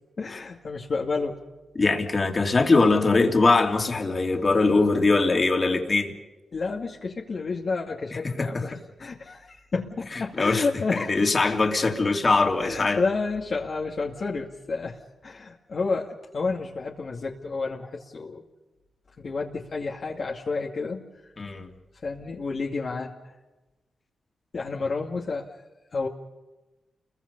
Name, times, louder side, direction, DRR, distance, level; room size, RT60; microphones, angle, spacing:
voice 1, 0.2-1.4 6.5-8.7 9.0-11.3 12.6-18.4 19.2-21.1 22.0-23.3 24.5-25.5 25.9-26.1, left 4 dB, 55° left, -2 dB, 2.3 m, -30 dB
voice 2, 1.7-6.1 8.4-8.6 10.4-10.6 10.9-13.0 21.4-21.7, left 3 dB, 40° left, 3 dB, 3.0 m, -21 dB
29.5 x 22.5 x 5.5 m, 1.1 s
cardioid pair, 85°, 0 cm